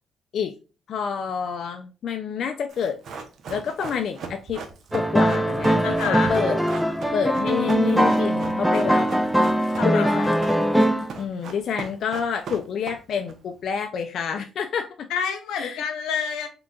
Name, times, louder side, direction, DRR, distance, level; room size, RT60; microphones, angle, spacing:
voice 1, 0.9-3.0 3.5-4.6 4.9-6.6 7.1-9.1 9.8-10.4 11.2-15.1 15.6-15.8, left 7 dB, 65° left, 0.4 m, -28 dB
Run, 2.7-13.3 13.6-13.7, right 5 dB, 65° right, 0.8 m, -38 dB
sound 1, 4.9-11.2, equal, 5° right, 0.4 m, -21 dB
voice 2, 5.8-6.3 9.8-10.2 15.1-16.5, left 6 dB, 90° left, 0.8 m, -28 dB
3.7 x 3.7 x 2.3 m
cardioid pair, 90°, 0 cm